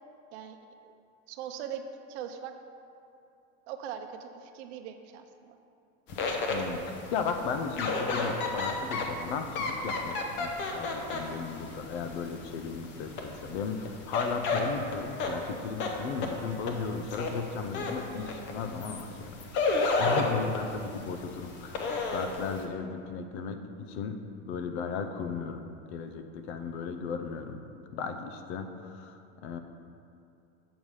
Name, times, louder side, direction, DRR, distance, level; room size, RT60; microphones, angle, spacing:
voice 1, 1.3-1.8 2.1-2.5 3.7-5.6, right 9 dB, 65° right, 6 dB, 0.7 m, -40 dB
sound 1, 6.1-22.6, left 3 dB, 30° left, 0.7 m, -33 dB
voice 2, 6.5-6.8 7.1-27.6 27.9-29.6, left 5 dB, 65° left, 7 dB, 0.7 m, -36 dB
7.1 x 4.8 x 5.5 m, 2.7 s
supercardioid pair, 160°, 36 cm